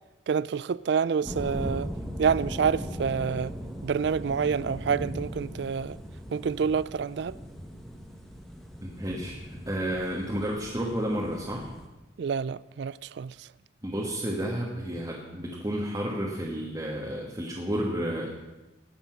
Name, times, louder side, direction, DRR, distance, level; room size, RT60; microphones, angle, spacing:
voice 1, 0.3-1.9 2.2-3.5 3.8-6.0 6.3-7.4 12.2-13.3, right 6 dB, 60° right, 0.3 m, -27 dB
sound 1, 1.3-11.9, equal, ahead, 1.2 m, -39 dB
voice 2, 8.8-11.7 13.8-18.3, equal, 20° right, 1.3 m, -31 dB
19.0 x 6.8 x 5.9 m
head